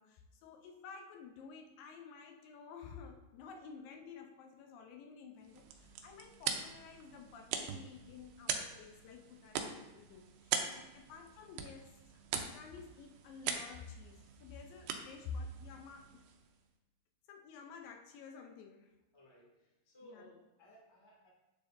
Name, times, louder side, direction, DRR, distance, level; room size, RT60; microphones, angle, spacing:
voice 1, 0.0-16.3 17.3-19.0 20.0-20.3, left 5 dB, 80° left, 4 dB, 2.2 m, -51 dB
sound 1, 5.4-16.6, right 7 dB, 90° right, 2.5 m, -42 dB
voice 2, 19.1-21.3, equal, 10° left, -4 dB, 1.4 m, -60 dB
8.9 x 6.9 x 2.6 m, 1.0 s
omnidirectional pair, 4.2 m